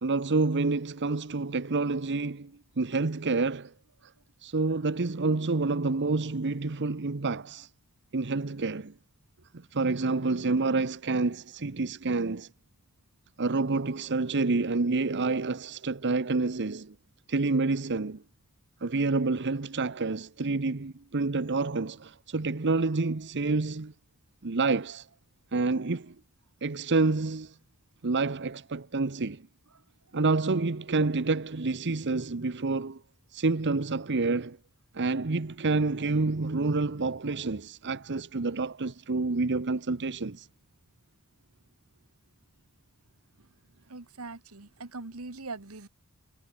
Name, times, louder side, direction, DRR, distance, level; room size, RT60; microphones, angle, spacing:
voice 1, 0.0-3.7 4.0-4.1 4.4-7.7 8.1-8.9 9.5-12.5 13.4-16.9 17.3-18.2 18.8-23.9 24.4-25.1 25.5-26.1 26.6-27.6 28.0-29.5 30.1-33.0 33.3-34.6 34.9-40.5, right 3 dB, 55° right, 0.9 m, -28 dB
voice 2, 43.9-45.9, right 3 dB, 75° right, 1.7 m, -42 dB
head